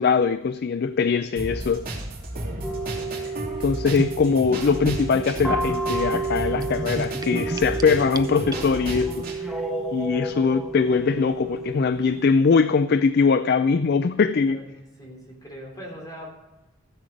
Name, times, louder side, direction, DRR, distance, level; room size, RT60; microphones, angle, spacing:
voice 1, 0.0-1.9 3.6-9.3 9.9-14.6, left 5 dB, 50° left, 0.4 m, -21 dB
sound 1, 1.4-9.4, right 1 dB, 45° right, 3.1 m, -33 dB
voice 2, 2.3-2.7 14.3-16.3, equal, 20° left, 3.1 m, -42 dB
sound 2, 2.6-12.2, right 3 dB, ahead, 1.3 m, -31 dB
Gurgling / Bathtub (filling or washing), 4.0-9.0, right 2 dB, 20° right, 0.4 m, -34 dB
14.5 x 7.6 x 5.1 m
head